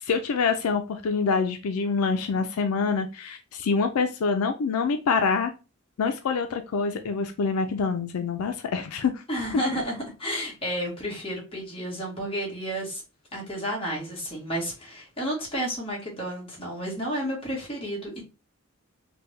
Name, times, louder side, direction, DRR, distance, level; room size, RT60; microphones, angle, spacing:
voice 1, 0.0-5.5 6.0-9.2, left 5 dB, 85° left, 7 dB, 0.4 m, -26 dB
voice 2, 9.3-13.0 13.3-18.2, equal, 25° left, -3 dB, 1.3 m, -31 dB
3.4 x 2.1 x 3.1 m, 0.30 s
head